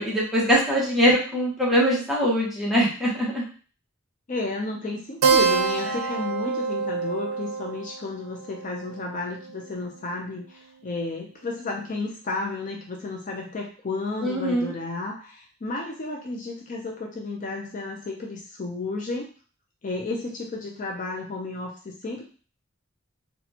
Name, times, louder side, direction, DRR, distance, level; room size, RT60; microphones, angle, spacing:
voice 1, 0.0-3.4 5.9-6.0 14.2-14.7, equal, ahead, -6 dB, 1.0 m, -22 dB
voice 2, 4.3-19.3 19.8-22.2, left 3 dB, 40° left, 0 dB, 0.5 m, -32 dB
Keyboard (musical), 5.2-10.2, right 5 dB, 85° right, 0.5 m, -26 dB
4.1 x 2.3 x 2.7 m, 0.39 s
head